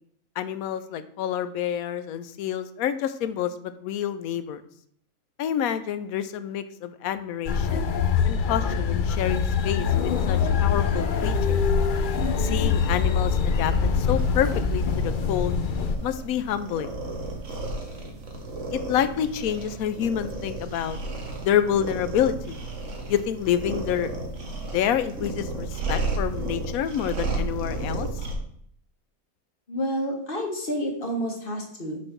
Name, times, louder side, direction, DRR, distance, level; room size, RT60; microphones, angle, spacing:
voice 1, 0.4-4.6 5.4-7.9 8.2-11.6 12.4-15.5 16.0-17.0 18.7-21.0 21.4-22.6 23.1-24.1 24.7-28.1, left 10 dB, 80° left, 12 dB, 1.0 m, -28 dB
sound 1, 7.5-16.0, left 6 dB, 60° left, 0.5 m, -24 dB
sound 2, 14.2-28.4, right 2 dB, 60° right, 1.4 m, -33 dB
voice 2, 29.7-32.0, equal, 40° left, 1 dB, 1.4 m, -29 dB
6.2 x 3.3 x 5.7 m, 0.65 s
omnidirectional pair, 1.5 m